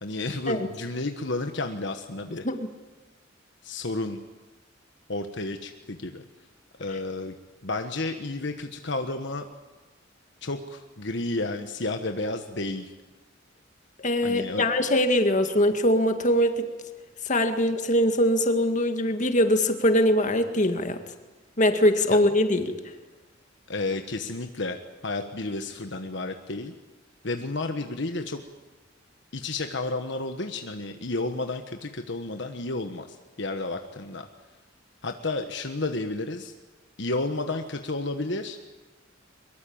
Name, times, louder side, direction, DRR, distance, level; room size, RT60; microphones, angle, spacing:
voice 1, 0.0-2.4 3.6-4.2 5.1-6.2 6.8-7.4 7.6-9.5 10.4-12.9 14.2-14.6 22.1-22.2 23.7-26.7 27.2-28.4 29.3-34.3 35.0-36.5 37.0-38.6, left 2 dB, 60° left, 6 dB, 1.4 m, -31 dB
voice 2, 14.0-16.7 17.3-21.0 21.6-22.7, left 1 dB, 40° left, 7 dB, 2.0 m, -22 dB
23.0 x 22.0 x 8.8 m, 1.2 s
head